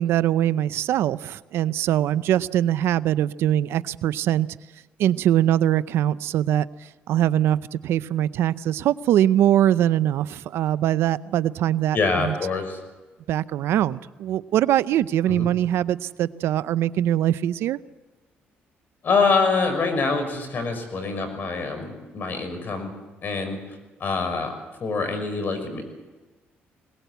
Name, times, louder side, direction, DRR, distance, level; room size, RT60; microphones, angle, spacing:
voice 1, 0.0-4.5 5.0-6.7 7.1-12.3 13.3-17.8, right 12 dB, 75° right, 16 dB, 0.6 m, -22 dB
voice 2, 11.9-12.8 15.3-15.5 19.0-22.9 23.2-23.6 24.0-24.5 24.8-25.8, left 4 dB, 50° left, 7 dB, 5.8 m, -25 dB
22.0 x 19.0 x 8.1 m, 1.2 s
cardioid pair, 90°, 4 cm